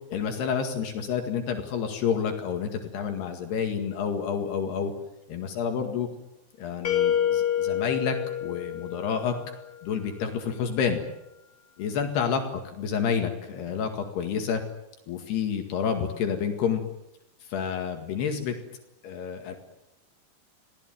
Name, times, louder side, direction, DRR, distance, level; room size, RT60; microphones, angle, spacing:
voice 1, 0.1-4.9 5.3-6.1 6.6-9.4 9.8-11.0 11.8-14.6 15.1-16.8 17.5-18.6 19.0-19.6, left 7 dB, 75° left, 5 dB, 4.0 m, -29 dB
sound 1, 6.9-9.7, left 10 dB, 55° left, 3.6 m, -27 dB
27.5 x 18.5 x 9.3 m, 0.90 s
omnidirectional pair, 4.8 m